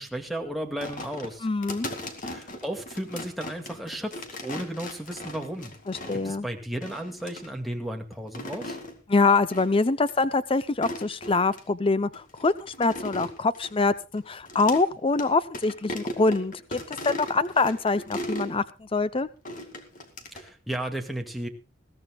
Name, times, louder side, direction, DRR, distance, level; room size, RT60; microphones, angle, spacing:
voice 1, 0.0-1.5 2.2-5.7 6.1-8.8 20.3-21.5, right 1 dB, ahead, 2 dB, 2.1 m, -34 dB
sound 1, 0.8-6.4 6.8-7.5 8.1-8.9 9.5-9.8 10.1-10.2 10.7-11.6 12.1-14.8 15.1-15.3 15.5-18.5 19.4-20.5, left 1 dB, 45° left, 2.3 m, -38 dB
voice 2, 1.4-1.9 5.9-6.5 9.1-19.3, left 3 dB, 30° left, 14 dB, 0.6 m, -25 dB
21.0 x 15.5 x 2.3 m, 0.30 s
head